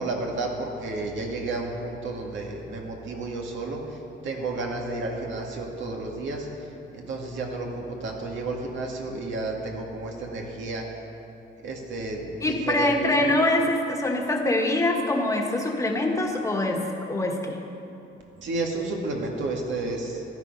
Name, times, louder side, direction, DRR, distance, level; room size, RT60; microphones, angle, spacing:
voice 1, 0.0-4.0 4.2-6.5 6.9-10.8 11.6-13.2 18.4-20.2, right 2 dB, 75° right, 0 dB, 2.1 m, -31 dB
voice 2, 12.4-16.8 17.1-17.6, left 1 dB, 15° left, 1 dB, 1.5 m, -24 dB
14.0 x 12.0 x 5.4 m, 2.8 s
cardioid pair, 140°, 20 cm